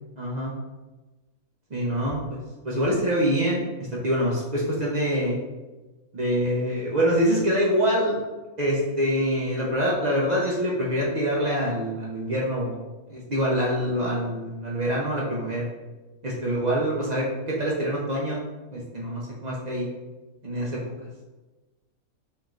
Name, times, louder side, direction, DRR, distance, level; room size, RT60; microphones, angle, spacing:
voice 1, 0.2-0.5 1.7-2.4 2.6-3.6 4.0-5.4 6.1-8.2 8.6-12.8 13.1-15.7 16.2-18.4 18.7-19.9 20.4-21.2, equal, 55° right, -4 dB, 0.4 m, -25 dB
4.6 x 3.0 x 2.4 m, 1.2 s
omnidirectional pair, 1.5 m